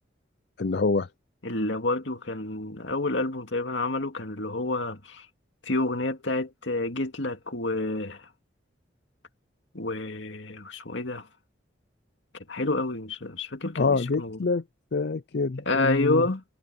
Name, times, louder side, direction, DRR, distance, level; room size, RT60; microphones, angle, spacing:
voice 1, 0.6-1.1 13.8-14.6 14.9-16.2, left 4 dB, 55° left, 0.5 m, -26 dB
voice 2, 1.4-5.3 5.6-8.3 9.7-11.3 12.5-14.4 15.7-16.4, left 2 dB, 75° left, 2.2 m, -29 dB
head